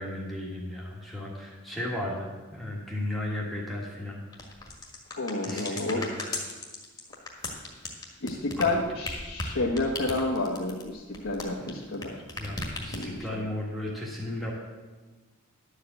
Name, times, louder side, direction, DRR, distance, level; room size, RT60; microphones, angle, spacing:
voice 1, 0.0-4.2 5.4-6.2 8.6-8.7 11.6-14.5, left 1 dB, ahead, -3 dB, 1.5 m, -35 dB
sound 1, 4.3-12.0 12.3-13.3, left 2 dB, 15° left, 1.5 m, -36 dB
voice 2, 5.2-6.1 8.2-12.2 12.9-13.3, left 2 dB, 65° left, -3 dB, 1.1 m, -30 dB
11.0 x 5.0 x 8.0 m, 1.3 s
head